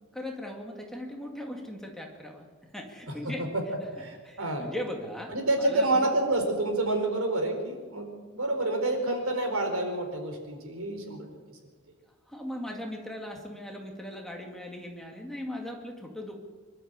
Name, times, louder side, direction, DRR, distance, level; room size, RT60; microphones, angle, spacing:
voice 1, 0.0-3.5 4.2-6.1 12.3-16.4, left 1 dB, ahead, 0 dB, 2.2 m, -39 dB
voice 2, 3.2-3.6 4.0-4.7 5.3-11.6, right 2 dB, 75° right, 4 dB, 4.5 m, -28 dB
25.0 x 12.5 x 8.3 m, 1.5 s
head